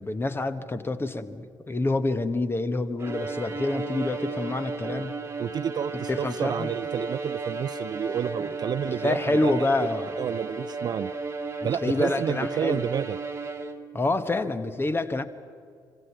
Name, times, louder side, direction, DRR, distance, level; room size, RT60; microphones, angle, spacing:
voice 1, 0.0-5.2 6.1-6.7 8.4-8.5 8.8-10.1 11.6-12.8 13.9-15.2, left 2 dB, 20° left, 12 dB, 1.4 m, -27 dB
Bowed string instrument, 3.0-14.0, right 3 dB, 25° right, 1.7 m, -34 dB
voice 2, 5.4-11.1 11.6-13.2, right 8 dB, 40° right, 15 dB, 0.5 m, -30 dB
26.5 x 25.0 x 6.0 m, 2.3 s
figure-of-eight pair, 45°, 11 cm